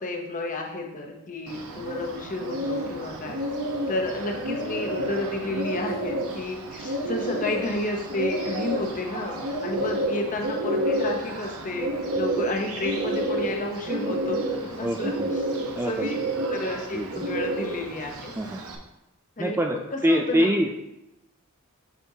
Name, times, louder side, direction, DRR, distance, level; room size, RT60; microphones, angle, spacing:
voice 1, 0.0-3.4 3.9-15.1 15.8-16.2 16.5-18.3 19.4-20.6, left 2 dB, 35° left, 2 dB, 0.9 m, -31 dB
Bird, 1.5-18.7, right 1 dB, 70° right, 0.9 m, -30 dB
voice 2, 14.8-15.3 15.8-16.1 16.9-17.1 18.4-18.6 19.4-20.8, equal, 10° right, 3 dB, 0.3 m, -25 dB
7.2 x 5.3 x 2.8 m, 0.91 s
head